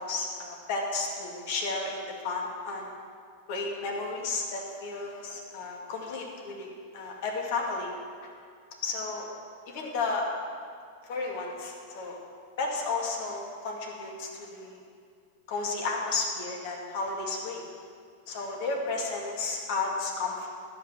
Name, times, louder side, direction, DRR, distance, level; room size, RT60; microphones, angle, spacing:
voice 1, 0.0-2.9 3.5-7.9 8.8-9.3 9.7-10.3 11.1-12.2 12.6-14.8 15.5-17.6 18.3-20.5, left 3 dB, 50° left, 0 dB, 2.1 m, -33 dB
11.0 x 8.8 x 6.0 m, 2.2 s
figure-of-eight pair, 90°, 0 cm